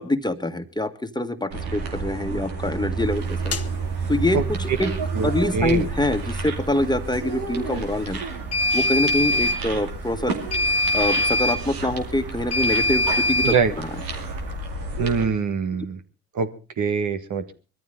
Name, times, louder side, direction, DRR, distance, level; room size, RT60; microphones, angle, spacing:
voice 1, 0.0-3.6 4.1-8.2 8.7-10.4 10.9-14.0 15.7-15.9, left 1 dB, 10° left, 8 dB, 1.7 m, -25 dB
sound 1, 1.5-15.2, right 4 dB, 80° right, 2.5 m, -30 dB
sound 2, 3.5-3.7 8.5-9.6 10.5-11.6 12.5-13.6, left 2 dB, 45° left, 1.3 m, -22 dB
voice 2, 5.2-5.8 13.4-13.7 15.0-16.0 16.3-16.5 16.8-17.5, right 5 dB, 60° right, 8 dB, 1.6 m, -23 dB
21.5 x 14.0 x 3.8 m, 0.34 s
hypercardioid pair, 40°, 34 cm